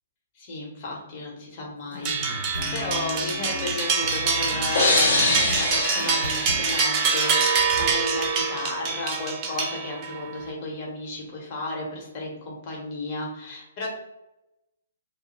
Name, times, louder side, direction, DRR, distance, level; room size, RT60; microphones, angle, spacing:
voice 1, 0.3-13.9, left 2 dB, 40° left, -2 dB, 0.9 m, -33 dB
sound 1, 1.9-6.8, left 2 dB, 85° left, 1.0 m, -36 dB
sound 2, 2.0-10.2, right 5 dB, 30° right, 0.5 m, -25 dB
sound 3, 4.7-7.5, left 3 dB, 55° left, 0.5 m, -25 dB
2.1 x 2.0 x 3.0 m, 0.93 s
figure-of-eight pair, 125°, 0 cm